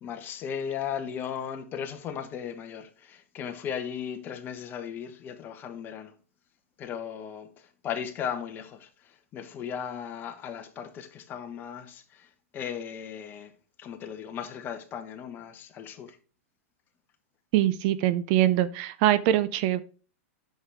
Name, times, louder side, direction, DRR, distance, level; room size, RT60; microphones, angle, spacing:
voice 1, 0.0-6.1 6.8-13.5 13.8-16.2, left 8 dB, 25° left, 1.2 m, -37 dB
voice 2, 17.5-19.8, right 13 dB, 45° right, 0.5 m, -23 dB
8.8 x 6.4 x 3.5 m
hypercardioid pair, 145°, 8 cm